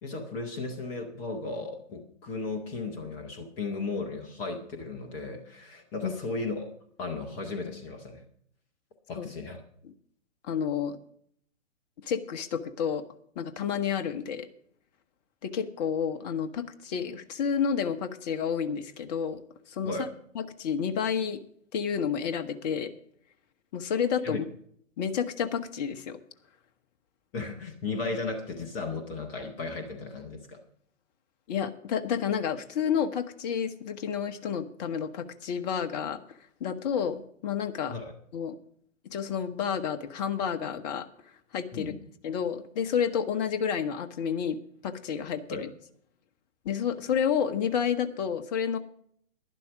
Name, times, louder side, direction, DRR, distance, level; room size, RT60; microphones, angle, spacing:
voice 1, 0.0-6.7 7.0-8.2 9.1-9.6 19.8-20.1 24.2-24.4 27.3-30.6 37.9-38.1 41.7-42.0 45.5-45.6, left 3 dB, 5° left, 4 dB, 0.4 m, -35 dB
voice 2, 10.5-11.0 12.0-13.0 13.4-14.5 15.4-19.4 19.7-19.9 20.3-21.4 21.7-22.9 23.7-24.4 25.0-26.2 31.5-36.2 36.6-37.9 38.3-38.5 39.0-41.1 41.5-41.9 42.2-44.6 44.8-45.7 46.6-48.8, left 7 dB, 35° left, 8 dB, 1.0 m, -30 dB
11.5 x 11.0 x 4.8 m, 0.64 s
figure-of-eight pair, 125°, 39 cm